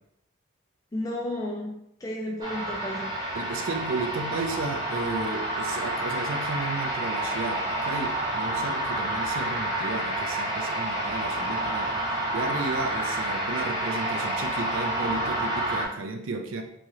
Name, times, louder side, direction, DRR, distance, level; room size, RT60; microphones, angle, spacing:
voice 1, 0.9-3.2, left 1 dB, 20° left, -1 dB, 0.4 m, -33 dB
sound 1, 2.4-15.9, right 1 dB, 20° right, 0.6 m, -29 dB
voice 2, 3.3-11.9 12.3-16.6, right 3 dB, 85° right, 5 dB, 0.5 m, -33 dB
3.1 x 2.9 x 3.6 m, 0.77 s
head